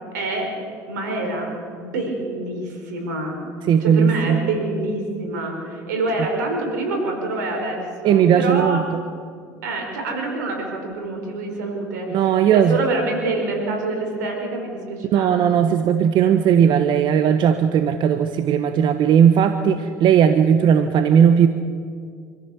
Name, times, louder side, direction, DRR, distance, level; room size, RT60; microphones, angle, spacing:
voice 1, 0.1-0.5 0.9-1.5 1.8-3.4 3.8-8.8 9.6-15.4, right 2 dB, 90° right, 3 dB, 4.6 m, -26 dB
voice 2, 3.7-4.5 8.0-8.8 12.1-12.8 15.1-21.5, right 8 dB, 55° right, 9 dB, 1.1 m, -17 dB
26.0 x 14.5 x 7.1 m, 2.2 s
hypercardioid pair, 80°, 9 cm